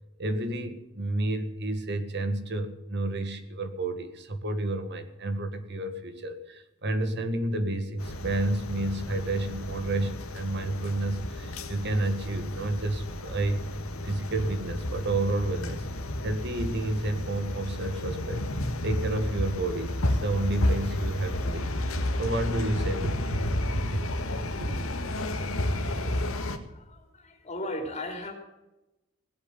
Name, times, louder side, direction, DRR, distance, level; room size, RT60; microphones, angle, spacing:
voice 1, 0.2-13.6 14.0-15.9 16.2-18.5 18.8-21.7 22.2-23.4 23.7-24.1 24.6-24.8, right 2 dB, 55° right, 9 dB, 1.7 m, -30 dB
sound 1, 8.0-26.6, left 1 dB, 80° left, 1.7 m, -32 dB
voice 2, 26.7-28.3, left 1 dB, 30° left, 2 dB, 3.5 m, -36 dB
17.5 x 8.2 x 9.7 m, 0.97 s
head